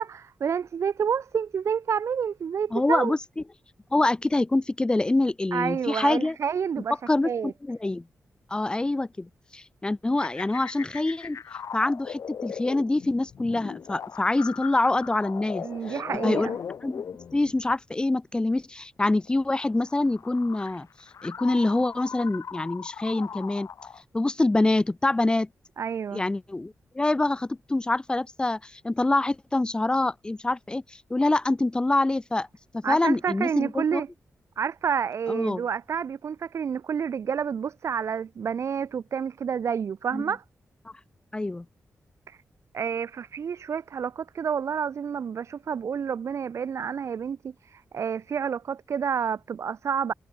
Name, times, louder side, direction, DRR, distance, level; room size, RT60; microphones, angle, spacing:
voice 1, 0.0-3.1 5.5-6.9 7.2-7.5 15.6-16.6 25.8-26.2 32.8-34.1 34.6-40.4 42.3-42.4 42.7-50.1, right 7 dB, 60° right, 0.8 m, -29 dB
voice 2, 2.7-3.2 3.9-6.4 7.1-8.0 8.5-11.4 11.7-16.0 16.2-16.5 16.8-17.0 17.3-20.9 21.2-23.7 24.1-25.5 26.1-32.5 32.7-34.0 35.3-35.6 40.1-40.2 41.3-41.7, left 2 dB, 15° left, 0.7 m, -25 dB
sound 1, 10.2-17.7 19.1-24.0, left 7 dB, 70° left, 3.5 m, -38 dB
wide cardioid pair, 130°, 5 cm